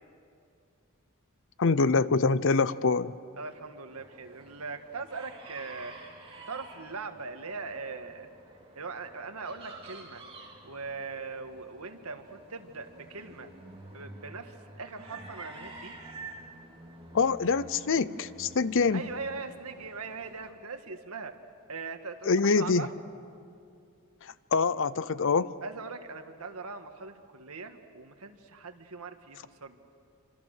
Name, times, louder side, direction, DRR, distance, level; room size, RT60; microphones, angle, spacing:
voice 1, 1.6-3.1 17.1-19.0 22.3-22.9 24.5-25.5, left 4 dB, 60° left, 17 dB, 0.6 m, -25 dB
voice 2, 3.3-6.0 6.5-8.3 8.7-10.2 10.6-13.5 13.9-15.9 18.9-21.3 21.7-22.9 25.6-29.8, right 4 dB, 80° right, 7 dB, 1.7 m, -40 dB
sound 1, 3.9-20.5, right 2 dB, 25° right, 2.9 m, -49 dB
27.0 x 26.5 x 6.6 m, 2.4 s
head